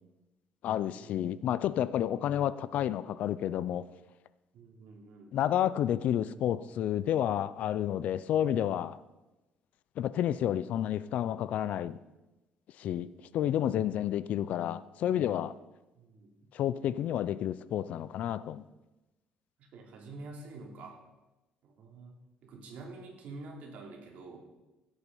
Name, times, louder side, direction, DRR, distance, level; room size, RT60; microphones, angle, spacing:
voice 1, 0.6-3.8 5.3-9.0 10.0-12.0 12.8-13.1 13.3-15.6 16.5-18.6, left 11 dB, 55° left, 0.4 m, -30 dB
voice 2, 4.5-5.3 16.0-16.5 19.6-21.0 21.6-24.4, right 3 dB, 60° right, 3.0 m, -47 dB
16.0 x 8.4 x 5.4 m
cardioid pair, 165°, 3 cm